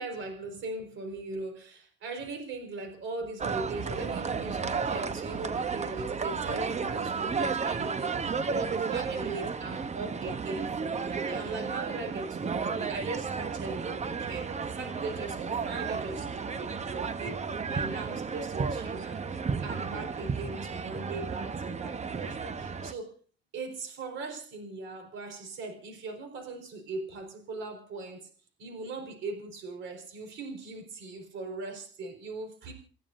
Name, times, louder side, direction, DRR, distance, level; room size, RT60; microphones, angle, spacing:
voice 1, 0.0-17.4 17.7-23.2 23.5-28.3 28.6-32.7, right 3 dB, 75° right, 4 dB, 4.6 m, -39 dB
sound 1, 3.4-22.9, right 5 dB, 35° right, 1.0 m, -33 dB
30.0 x 15.0 x 2.7 m, 0.40 s
cardioid pair, 90°, 20 cm